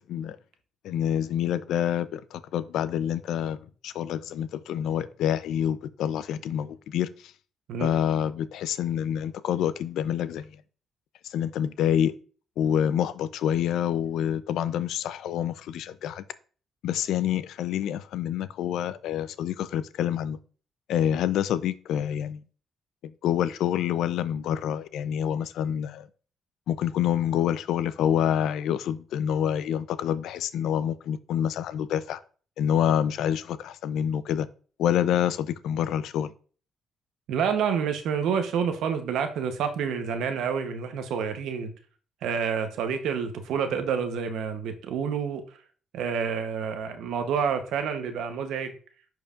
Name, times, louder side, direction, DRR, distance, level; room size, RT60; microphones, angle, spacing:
voice 1, 0.8-3.6 3.8-7.3 7.8-10.5 11.3-12.1 12.6-16.2 16.8-20.4 20.9-22.4 23.0-26.1 26.7-32.2 32.6-34.5 34.8-36.3, left 9 dB, 80° left, 0.4 m, -27 dB
voice 2, 37.3-41.7 42.2-45.6 45.9-48.7, right 7 dB, 80° right, 0.8 m, -28 dB
10.5 x 4.6 x 2.4 m
cardioid pair, 90°, 0 cm